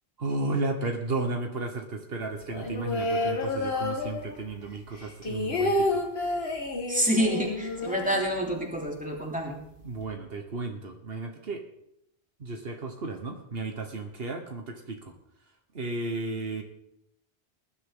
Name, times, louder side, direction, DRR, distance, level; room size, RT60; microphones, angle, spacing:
voice 1, 0.2-6.0 9.8-11.6 12.4-15.1 15.7-16.6, right 3 dB, 70° right, 4 dB, 1.5 m, -33 dB
sound 1, 2.5-4.6 4.9-8.9 9.2-9.3 9.5-10.0, left 2 dB, 75° left, 2.1 m, -30 dB
voice 2, 6.9-9.6, equal, 5° right, -1 dB, 3.0 m, -27 dB
19.5 x 11.5 x 3.8 m, 0.76 s
omnidirectional pair, 1.0 m